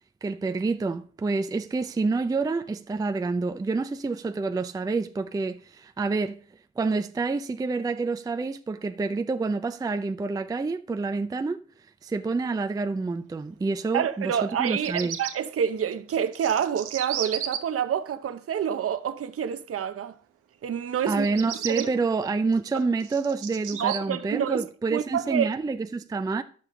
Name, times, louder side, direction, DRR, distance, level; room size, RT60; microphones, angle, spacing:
voice 1, 0.2-6.4 6.8-11.6 12.0-15.2 21.1-26.4, right 4 dB, 15° right, 0.4 m, -28 dB
voice 2, 13.9-20.2 20.6-21.3 21.7-21.9 22.7-22.8 23.8-24.6 24.9-25.5, right 8 dB, 50° right, 0.8 m, -28 dB
Bird vocalization bird call bird song, 14.5-15.3 16.1-17.6 21.1-21.8 22.5-24.0, right 10 dB, 85° right, 1.1 m, -34 dB
10.5 x 6.9 x 3.8 m
cardioid pair, 90°, 30 cm